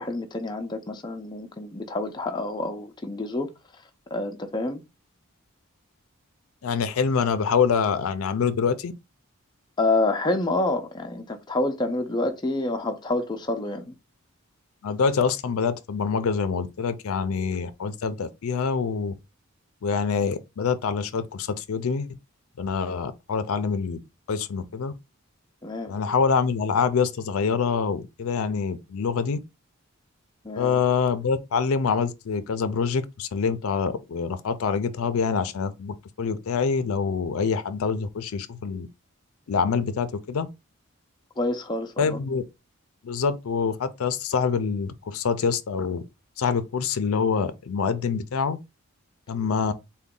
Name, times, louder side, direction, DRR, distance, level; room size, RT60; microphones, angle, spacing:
voice 1, 0.0-3.5 4.1-4.8 9.8-13.9 25.6-25.9 30.4-30.8 41.4-42.2, left 2 dB, 20° left, 0.4 m, -28 dB
voice 2, 6.6-8.9 14.8-19.1 19.8-22.1 22.6-24.0 24.3-24.9 25.9-29.4 30.6-38.9 39.5-40.5 42.0-42.4 43.0-46.0 46.4-48.6 49.3-49.7, left 5 dB, 75° left, 0.4 m, -25 dB
3.8 x 2.2 x 3.7 m
head